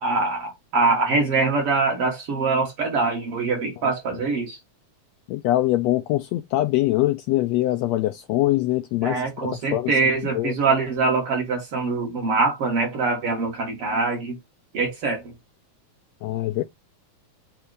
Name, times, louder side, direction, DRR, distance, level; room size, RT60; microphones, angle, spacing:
voice 1, 0.0-4.6 9.0-14.4 14.7-15.3, right 4 dB, 50° right, 2.7 m, -23 dB
voice 2, 5.3-10.5 16.2-16.6, left 15 dB, 80° left, 1.6 m, -23 dB
7.0 x 2.8 x 5.0 m
omnidirectional pair, 3.4 m